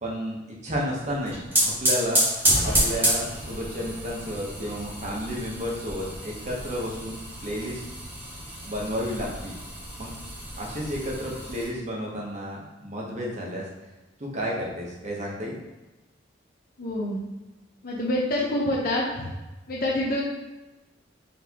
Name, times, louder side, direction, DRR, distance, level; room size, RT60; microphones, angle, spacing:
voice 1, 0.0-0.4 0.6-2.2 2.6-7.8 8.6-9.5 10.0-10.1 10.6-13.6 14.2-15.6, equal, 40° right, -3 dB, 1.0 m, -32 dB
sound 1, 1.1-11.7, right 1 dB, 10° right, 1.2 m, -29 dB
voice 2, 16.8-17.2 17.8-19.3 19.7-20.2, left 1 dB, 55° left, -5 dB, 0.7 m, -26 dB
4.2 x 3.3 x 2.9 m, 1.1 s
head